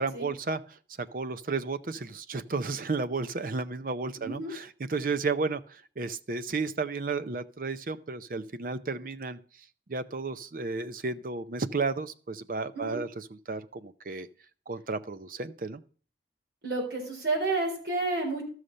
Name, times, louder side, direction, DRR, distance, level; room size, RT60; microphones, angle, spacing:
voice 1, 0.0-9.4 9.9-14.3 14.7-15.8, right 4 dB, 50° right, 11 dB, 0.5 m, -33 dB
voice 2, 4.2-4.5 12.7-13.0 16.6-18.4, right 3 dB, 65° right, 0 dB, 4.0 m, -30 dB
13.0 x 6.5 x 5.4 m, 0.41 s
head